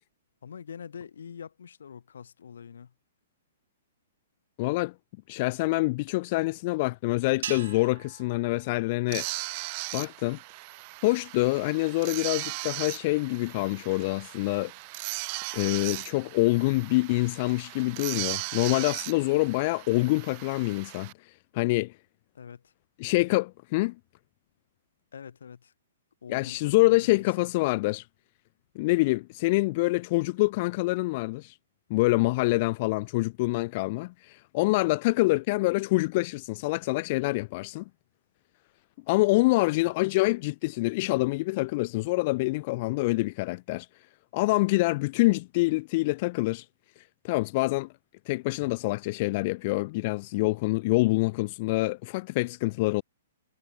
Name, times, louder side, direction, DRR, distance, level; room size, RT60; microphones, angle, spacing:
voice 1, 0.4-2.9 22.3-22.7 25.1-25.7 26.2-27.5, left 7 dB, 85° left, 2.6 m, -44 dB
voice 2, 4.6-4.9 5.3-9.3 9.9-10.4 11.0-14.7 15.5-21.1 21.5-21.9 23.0-23.9 26.3-28.0 28.8-31.5 31.9-37.8 39.1-43.9 44.3-46.6 47.2-47.9 48.3-53.0, left 22 dB, 35° left, 0.6 m, -26 dB
sound 1, 7.4-9.9, right 10 dB, 60° right, 3.8 m, -42 dB
sound 2, 9.1-21.1, right 29 dB, 30° right, 1.9 m, -38 dB
hypercardioid pair, 170°, 0 cm